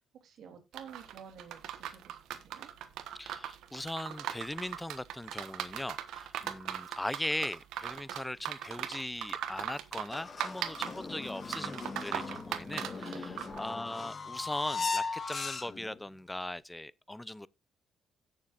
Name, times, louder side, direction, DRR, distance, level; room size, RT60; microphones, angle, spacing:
voice 1, 0.0-2.7 13.3-13.5, right 7 dB, 70° right, 2.8 m, -52 dB
sound 1, 0.7-13.6, right 11 dB, 85° right, 1.1 m, -39 dB
voice 2, 3.2-17.5, left 1 dB, 10° left, 0.5 m, -39 dB
sound 2, 10.1-16.0, left 4 dB, 40° left, 1.4 m, -38 dB
17.0 x 6.8 x 2.4 m
cardioid pair, 90°, 0 cm